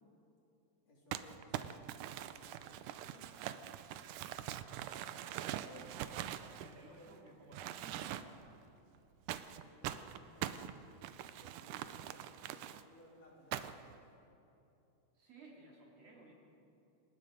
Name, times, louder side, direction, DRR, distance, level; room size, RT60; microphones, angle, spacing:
voice 1, 0.8-3.4 5.4-6.1 6.6-7.4 9.5-10.9 11.2-13.9, left 1 dB, 55° left, -3 dB, 4.5 m, -61 dB
Crumpling crinkling, 1.1-7.1 7.5-8.5 9.3-12.8 13.5-13.9, right 11 dB, 90° right, 2.3 m, -43 dB
voice 2, 4.9-5.6 6.5-8.4 15.1-16.3, right 2 dB, 50° right, -2 dB, 4.0 m, -58 dB
29.0 x 19.0 x 5.1 m, 2.9 s
omnidirectional pair, 3.6 m